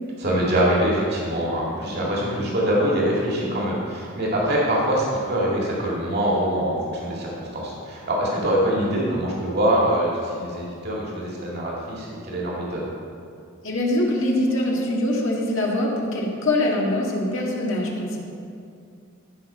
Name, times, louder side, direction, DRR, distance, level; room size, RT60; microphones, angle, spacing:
voice 1, 0.2-12.8, right 1 dB, 50° right, -4 dB, 2.1 m, -24 dB
voice 2, 13.6-18.3, left 1 dB, 65° left, -2 dB, 1.8 m, -23 dB
15.0 x 5.8 x 4.4 m, 2.4 s
head